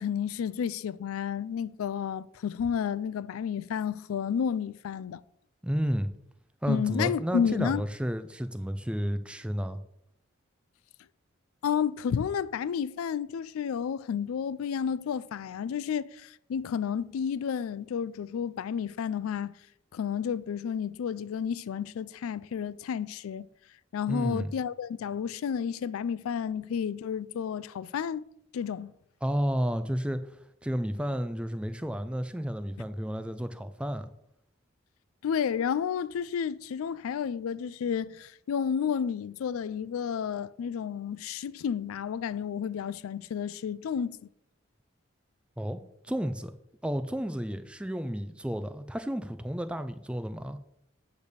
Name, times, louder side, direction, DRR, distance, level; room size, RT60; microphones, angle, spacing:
voice 1, 0.0-5.2 6.7-7.9 11.6-19.5 19.9-23.5 23.9-28.3 28.5-28.9 35.2-44.2, left 7 dB, 90° left, 0.3 m, -31 dB
voice 2, 5.6-6.1 6.6-9.8 24.1-24.5 29.2-30.2 30.6-34.1 45.6-46.5 46.8-50.6, equal, 5° right, 0.4 m, -31 dB
8.6 x 3.4 x 6.7 m
head